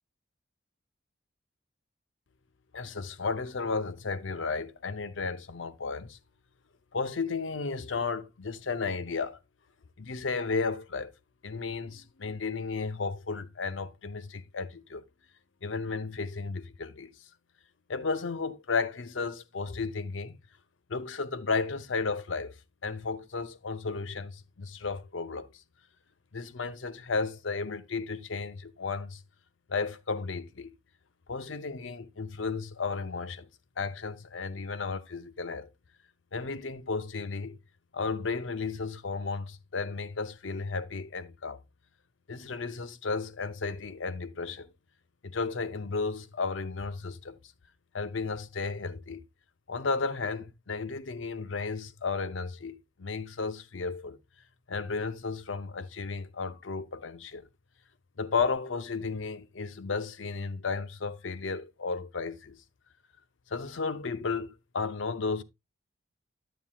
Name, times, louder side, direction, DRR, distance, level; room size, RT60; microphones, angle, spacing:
voice 1, 2.7-6.2 6.9-9.4 10.0-11.1 11.4-15.0 15.6-17.1 17.9-20.3 20.9-25.6 26.3-29.2 29.7-30.7 31.3-33.5 33.8-35.7 36.3-37.6 37.9-41.6 42.3-44.7 45.2-47.4 47.9-49.2 49.7-54.2 54.7-57.5 58.2-62.6 63.5-65.4, left 4 dB, 80° left, 0.7 m, -33 dB
9.3 x 8.5 x 2.3 m
head